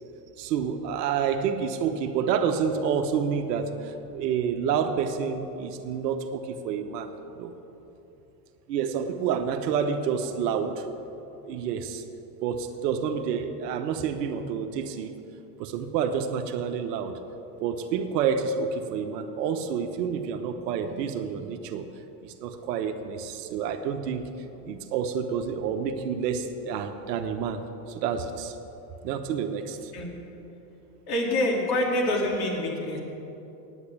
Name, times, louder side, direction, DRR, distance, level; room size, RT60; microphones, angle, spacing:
voice 1, 0.4-7.5 8.7-10.8 11.4-12.0 12.4-15.1 15.6-17.2 17.6-21.9 22.2-24.2 24.7-28.6 29.0-29.9, right 7 dB, 70° right, 7 dB, 1.1 m, -29 dB
voice 2, 31.1-33.0, left 1 dB, 45° left, -1 dB, 3.0 m, -26 dB
9.1 x 8.4 x 8.5 m, 3.0 s
hypercardioid pair, 90°, 50 cm